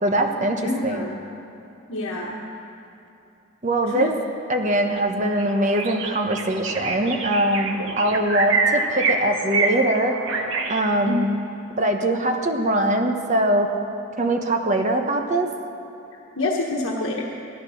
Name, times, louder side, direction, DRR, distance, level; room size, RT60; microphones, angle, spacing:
voice 1, 0.0-1.1 3.6-4.2 4.5-10.2 10.7-11.3 11.8-13.7 14.2-15.5, right 1 dB, 35° right, 3 dB, 1.1 m, -22 dB
voice 2, 0.6-1.2 1.9-2.4 3.8-4.1 11.1-11.2 16.4-17.2, left 2 dB, 85° left, -2 dB, 1.3 m, -26 dB
sound 1, 5.0-5.1 5.4-10.8, right 4 dB, 70° right, 1.2 m, -26 dB
15.5 x 12.5 x 6.4 m, 2.9 s
head